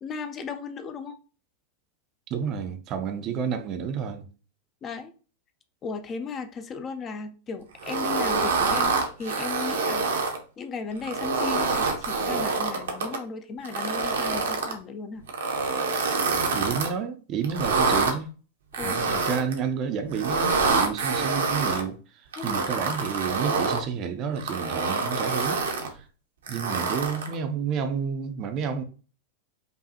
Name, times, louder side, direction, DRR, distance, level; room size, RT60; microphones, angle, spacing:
voice 1, 0.0-1.2 4.8-5.1 5.8-10.0 10.6-15.2 18.8-19.0 22.4-22.6, left 4 dB, 25° left, 0.5 m, -35 dB
voice 2, 2.3-4.3 16.5-18.3 18.8-26.1 26.5-28.8, right 7 dB, 35° right, 0.5 m, -30 dB
sound 1, 7.8-10.4 11.0-13.2 13.6-14.7 15.3-16.9 17.4-18.1 18.7-19.6 20.1-21.8 22.3-23.8 24.4-25.9 26.5-27.3, right 4 dB, 65° right, 0.8 m, -26 dB
5.3 x 2.3 x 2.7 m
figure-of-eight pair, 90°, 0 cm